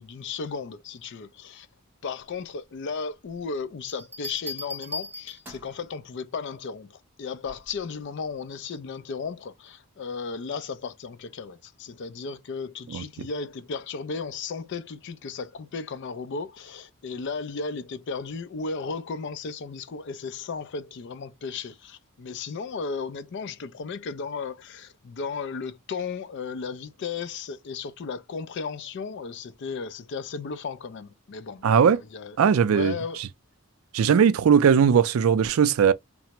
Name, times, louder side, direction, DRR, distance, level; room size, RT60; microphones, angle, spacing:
voice 1, 0.0-1.7 2.0-32.4 32.7-33.2, left 5 dB, 55° left, 0.4 m, -35 dB
Bell, 3.9-5.8 7.4-7.8, left 2 dB, 10° right, 0.6 m, -38 dB
voice 2, 31.6-32.0 32.4-32.9 33.9-35.9, right 7 dB, 70° right, 0.3 m, -19 dB
3.3 x 2.0 x 2.8 m
head